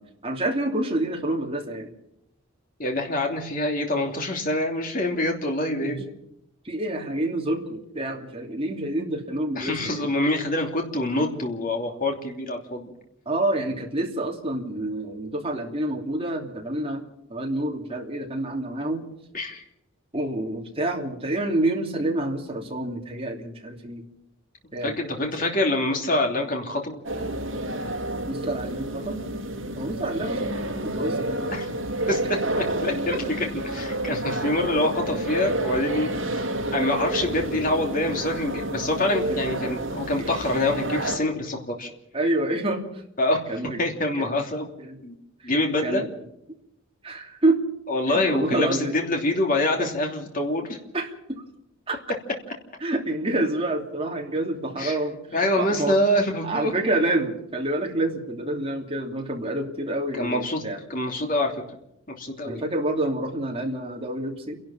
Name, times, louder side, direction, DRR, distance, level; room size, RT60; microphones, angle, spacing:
voice 1, 0.0-1.9 5.8-6.0 6.6-10.1 13.3-17.0 17.3-19.1 20.1-24.1 24.7-25.0 28.3-29.2 29.8-31.6 35.1-35.2 39.3-39.4 40.2-40.3 42.1-43.0 43.5-44.0 44.8-45.0 45.4-46.1 47.0-47.6 48.1-48.9 49.8-49.9 50.9-51.4 51.9-52.0 52.8-56.0 56.4-60.8 62.5-64.6, right 1 dB, 25° right, 1 dB, 3.0 m, -28 dB
voice 2, 2.8-6.1 9.6-12.9 19.3-19.6 24.8-27.0 31.5-31.7 32.1-36.5 36.7-41.9 43.2-43.4 43.8-44.7 45.0-45.1 45.4-46.0 47.9-50.8 54.8-55.0 55.3-56.7 60.1-60.6 60.9-61.5 62.2-62.6, left 1 dB, 40° left, 2 dB, 3.0 m, -25 dB
sound 1, 27.0-41.2, right 1 dB, 60° right, 2.7 m, -29 dB
30.0 x 12.0 x 7.3 m, 0.80 s
head